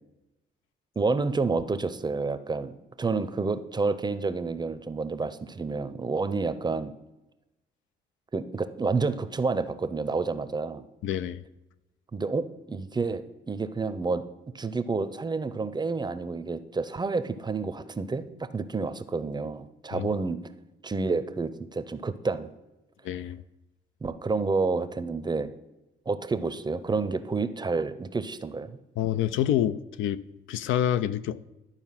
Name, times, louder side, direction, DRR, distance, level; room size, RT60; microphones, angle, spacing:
voice 1, 1.0-2.7 3.0-6.9 8.3-10.8 12.1-14.2 14.5-20.4 20.8-22.5 24.0-25.5 26.1-28.8, right 4 dB, 20° right, 12 dB, 0.6 m, -29 dB
voice 2, 11.0-11.4 19.9-20.1 23.0-23.4 29.0-31.4, left 11 dB, 85° left, 14 dB, 0.4 m, -27 dB
11.5 x 4.5 x 5.7 m, 0.99 s
cardioid pair, 90°, 20 cm